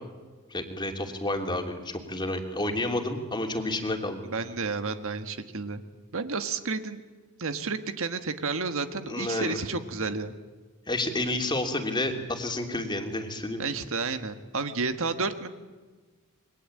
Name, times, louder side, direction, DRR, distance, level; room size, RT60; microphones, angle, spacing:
voice 1, 0.5-4.2 9.1-9.6 10.9-13.6, left 1 dB, 20° left, 3 dB, 3.0 m, -30 dB
voice 2, 4.2-5.8 6.1-7.0 7.4-10.3 13.6-15.5, right 4 dB, 65° right, 9 dB, 1.5 m, -31 dB
28.0 x 22.5 x 8.7 m, 1.3 s
head